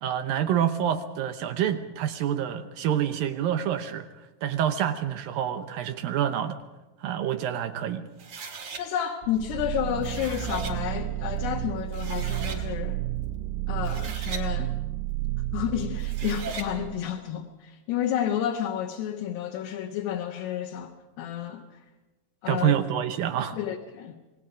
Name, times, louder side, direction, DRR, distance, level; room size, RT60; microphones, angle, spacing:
voice 1, 0.0-4.1 4.4-6.6 7.0-8.0 22.5-23.6, right 10 dB, 70° right, 9 dB, 2.3 m, -27 dB
sound 1, 8.2-8.8 9.8-10.8 11.6-11.7 11.9-12.6 13.7-14.5 15.9-16.7, right 5 dB, 50° right, 3.2 m, -38 dB
voice 2, 8.8-13.0 13.7-14.7 15.5-21.8 22.4-22.8 23.5-24.2, left 10 dB, 75° left, 1 dB, 3.3 m, -31 dB
sound 2, 9.2-17.1, right 15 dB, 90° right, 1.9 m, -31 dB
28.0 x 19.0 x 5.1 m, 1.1 s
omnidirectional pair, 4.9 m